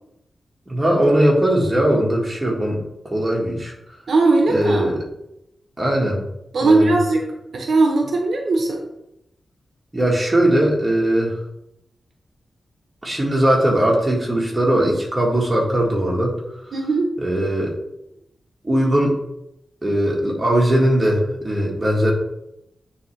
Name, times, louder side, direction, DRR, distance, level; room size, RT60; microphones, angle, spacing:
voice 1, 0.7-2.8 3.1-3.7 4.5-5.0 5.8-6.2 6.6-6.9 9.9-11.4 13.0-16.3 17.2-17.7 18.6-19.2 19.8-22.1, right 1 dB, 20° right, -3 dB, 1.7 m, -19 dB
voice 2, 4.1-4.9 6.5-7.3 7.5-8.8 16.7-17.1, right 3 dB, 65° right, 1 dB, 0.9 m, -18 dB
9.0 x 3.4 x 3.3 m, 0.83 s
wide cardioid pair, 100°, 0 cm